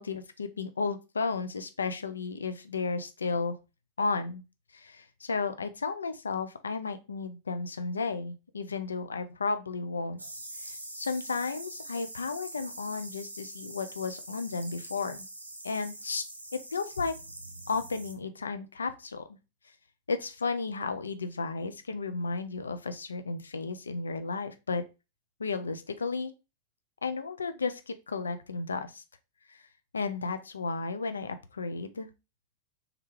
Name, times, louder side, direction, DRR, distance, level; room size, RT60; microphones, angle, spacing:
voice 1, 0.0-3.5 4.0-4.4 4.7-10.2 10.6-15.3 15.6-17.1 17.7-19.2 20.1-24.8 25.4-26.3 27.0-29.0 29.5-29.6 29.9-32.1, left 4 dB, 75° left, 10 dB, 0.4 m, -33 dB
sound 1, 10.2-18.1, right 1 dB, 85° right, 0.5 m, -44 dB
3.5 x 3.3 x 3.0 m, 0.27 s
figure-of-eight pair, 90°, 0 cm